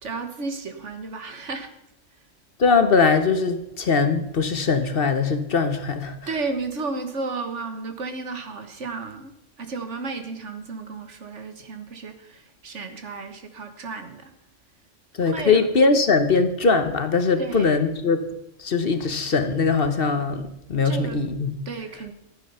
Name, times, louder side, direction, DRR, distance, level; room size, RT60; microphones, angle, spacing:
voice 1, 0.0-1.7 6.3-9.3 9.6-14.3 15.3-15.6 17.4-17.8 20.8-21.2 21.6-22.1, right 3 dB, 70° right, 1.7 m, -33 dB
voice 2, 2.6-6.2 15.1-18.3 18.6-21.6, left 4 dB, 50° left, 1.1 m, -21 dB
14.5 x 9.1 x 5.6 m
omnidirectional pair, 1.3 m